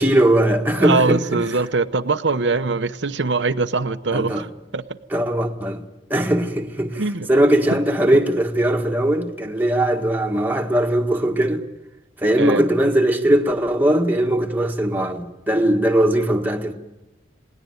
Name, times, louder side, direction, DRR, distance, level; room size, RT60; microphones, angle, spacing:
voice 1, 0.0-1.4 4.1-4.5 5.1-5.8 6.1-11.6 12.2-16.7, right 1 dB, 10° right, 1.6 m, -19 dB
voice 2, 0.8-4.5 4.7-4.8 7.0-7.3 12.4-12.6, right 3 dB, 85° right, 0.9 m, -22 dB
20.5 x 18.5 x 9.4 m
head